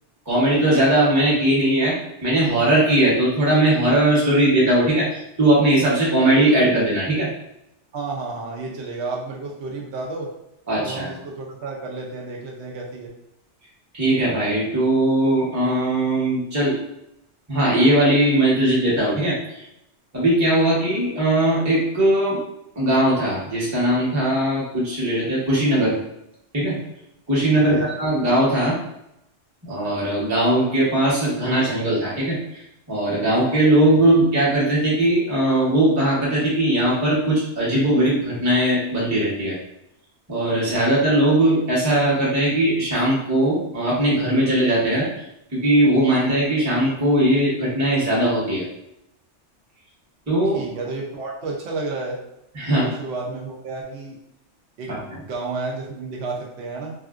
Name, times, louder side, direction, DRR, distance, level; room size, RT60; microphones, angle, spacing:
voice 1, 0.3-2.0 2.2-7.3 10.7-11.1 13.9-16.8 17.5-19.6 20.1-22.4 22.8-25.9 26.5-26.8 27.3-28.8 29.6-32.6 32.9-39.5 40.3-45.1 45.5-48.6 50.3-50.6 52.5-52.9 54.9-55.2, right 1 dB, 15° right, -7 dB, 0.8 m, -19 dB
voice 2, 7.9-10.3 10.8-13.1 27.5-27.9 33.9-34.1 50.5-52.2 52.7-54.2 54.8-55.0 55.3-56.9, right 3 dB, 70° right, -2 dB, 0.9 m, -31 dB
3.5 x 2.4 x 2.4 m, 0.81 s
omnidirectional pair, 1.2 m